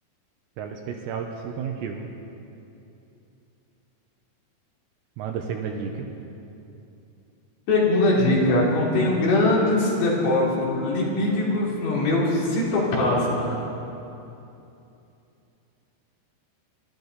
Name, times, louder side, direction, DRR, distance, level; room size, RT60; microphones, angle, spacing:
voice 1, 0.6-2.1 5.2-6.1, right 6 dB, 80° right, 2 dB, 2.9 m, -32 dB
voice 2, 7.7-13.6, left 2 dB, 60° left, -6 dB, 5.0 m, -21 dB
25.5 x 12.5 x 4.1 m, 2.8 s
omnidirectional pair, 5.5 m